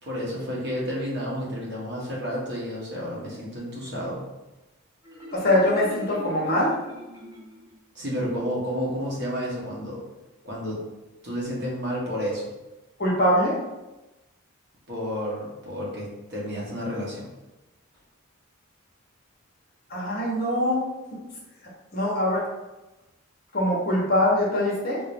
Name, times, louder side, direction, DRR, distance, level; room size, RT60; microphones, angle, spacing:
voice 1, 0.0-4.3 7.9-10.0 10.4-10.8 11.2-12.5 14.9-17.3, equal, 50° right, -4 dB, 1.2 m, -31 dB
Marimba xylophone, 5.0-7.8, equal, 15° right, 0.8 m, -40 dB
voice 2, 5.3-6.7 13.0-13.6 19.9-20.8 21.9-22.5 23.5-25.0, left 1 dB, 45° left, -3 dB, 0.9 m, -23 dB
3.8 x 2.6 x 3.4 m, 1.0 s
head